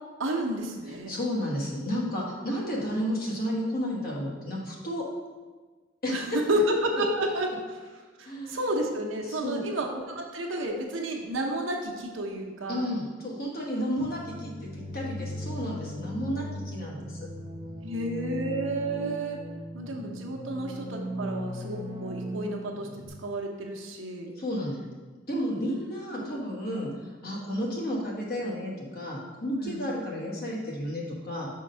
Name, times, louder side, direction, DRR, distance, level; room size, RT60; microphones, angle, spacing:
voice 1, 0.2-1.1 6.1-7.5 8.2-12.9 17.8-19.4 19.7-22.9 23.2-24.3 26.6-26.8 29.6-29.8, right 1 dB, 90° right, 1 dB, 0.9 m, -31 dB
voice 2, 0.8-5.0 6.0-6.4 8.2-8.6 9.2-9.7 12.7-17.2 24.4-24.8 25.3-31.5, equal, 50° left, -3 dB, 1.4 m, -32 dB
sound 1, 14.0-23.1, equal, 30° right, 0.6 m, -38 dB
5.1 x 3.7 x 5.6 m, 1.4 s
head